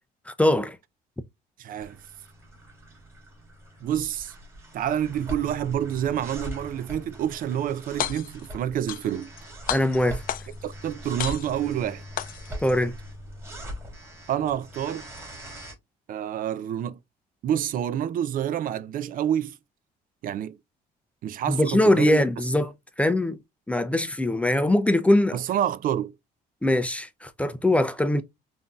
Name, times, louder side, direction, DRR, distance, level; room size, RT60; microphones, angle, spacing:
voice 1, 0.3-0.8 9.7-10.2 12.6-12.9 21.5-22.7 23.0-23.4 23.7-25.4 26.6-28.2, left 1 dB, 10° left, 0.5 m, -22 dB
voice 2, 1.6-2.0 3.8-4.3 4.7-9.3 10.6-12.0 14.3-15.1 16.1-17.0 17.4-19.6 20.2-20.6 21.2-22.2 25.3-26.1, right 10 dB, 55° right, 0.4 m, -28 dB
sound 1, 1.8-15.7, equal, 15° right, 2.7 m, -41 dB
sound 2, 7.9-8.5 8.9-9.4 9.7-10.7 11.2-11.7 12.2-12.7, left 11 dB, 55° left, 0.5 m, -32 dB
5.5 x 2.7 x 2.4 m
cardioid pair, 110°, 17 cm